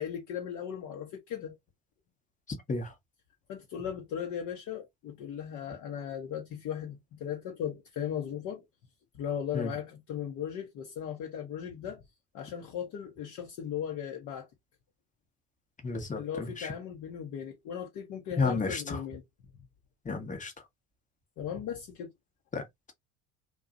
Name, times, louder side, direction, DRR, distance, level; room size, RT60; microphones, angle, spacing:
voice 1, 0.0-1.6 3.5-8.6 9.1-12.0 12.3-14.5 16.1-19.2 21.4-22.1, left 9 dB, 50° left, 0.8 m, -37 dB
voice 2, 15.8-16.7 18.4-19.0 20.0-20.5 22.5-22.9, left 4 dB, 20° left, 0.9 m, -32 dB
2.7 x 2.3 x 2.4 m
hypercardioid pair, 70°, 37 cm